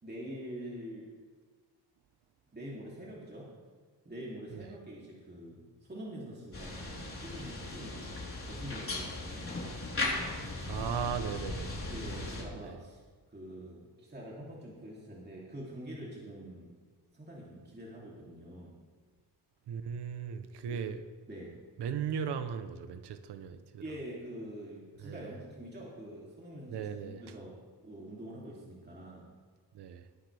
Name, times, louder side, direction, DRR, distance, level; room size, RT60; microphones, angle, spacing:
voice 1, 0.0-1.1 2.5-3.5 4.0-9.6 11.9-13.0 13.3-16.7 17.1-18.8 20.7-20.8 21.3-21.6 23.8-27.6 27.8-29.3, right 1 dB, 25° right, -5 dB, 2.9 m, -45 dB
sound 1, 6.5-12.4, left 2 dB, 35° left, 3.7 m, -38 dB
voice 2, 10.6-11.9 12.4-12.8 19.7-21.0 21.8-23.8 25.0-25.3 26.7-27.2 29.7-30.1, right 7 dB, 80° right, 10 dB, 0.9 m, -37 dB
18.5 x 9.7 x 3.4 m, 1.5 s
cardioid pair, 85°, 40 cm